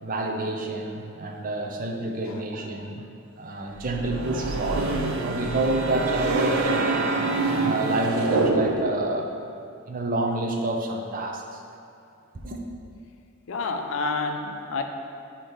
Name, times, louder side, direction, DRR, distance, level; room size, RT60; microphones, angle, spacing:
voice 1, 0.0-3.1 3.4-6.9 7.5-9.3 9.9-11.6 12.4-12.6, right 2 dB, 40° right, 1 dB, 0.6 m, -28 dB
sound 1, 3.8-9.1, right 3 dB, 85° right, 0.6 m, -26 dB
voice 2, 13.5-14.8, left 3 dB, 70° left, 5 dB, 0.5 m, -29 dB
7.9 x 2.9 x 5.0 m, 2.5 s
head